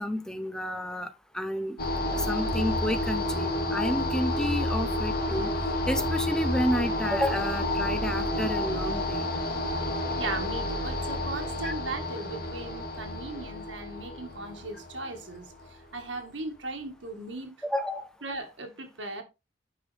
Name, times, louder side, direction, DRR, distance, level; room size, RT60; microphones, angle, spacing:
voice 1, 0.0-1.8 2.1-5.5 5.9-9.2 11.6-11.7 17.6-18.1, equal, 5° left, 0.6 m, -30 dB
sound 1, 1.8-15.9, left 1 dB, 55° left, 2.0 m, -30 dB
voice 2, 10.2-17.6 18.2-19.2, right 2 dB, 75° right, 1.8 m, -37 dB
9.6 x 5.5 x 3.4 m
head